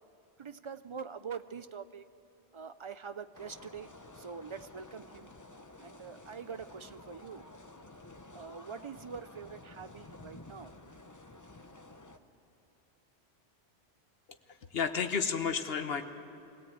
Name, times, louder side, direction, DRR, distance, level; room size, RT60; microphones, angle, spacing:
voice 1, 0.4-2.1 2.5-3.9 4.2-5.3 5.8-7.4 8.3-10.9, right 6 dB, 45° right, 13 dB, 0.4 m, -44 dB
sound 1, 3.3-12.2, left 2 dB, 20° left, 0.8 m, -52 dB
voice 2, 14.7-16.0, left 6 dB, 65° left, 7 dB, 1.3 m, -31 dB
22.0 x 17.5 x 8.8 m, 2.9 s
omnidirectional pair, 1.1 m